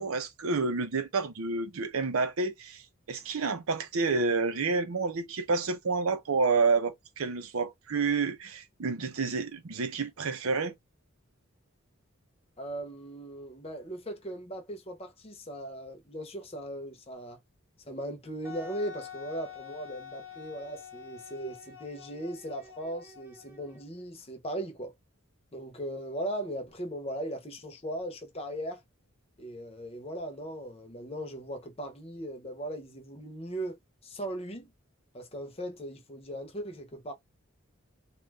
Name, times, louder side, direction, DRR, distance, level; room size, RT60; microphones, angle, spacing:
voice 1, 0.0-2.8 3.1-10.7, right 4 dB, 85° right, 0.7 m, -29 dB
voice 2, 12.6-17.4 17.9-24.9 25.5-28.8 29.4-33.8 34.0-34.7 35.1-37.1, right 1 dB, 30° left, 0.7 m, -38 dB
Wind instrument woodwind instrument, 18.4-24.0, left 7 dB, 10° right, 0.8 m, -47 dB
2.6 x 2.4 x 3.3 m
head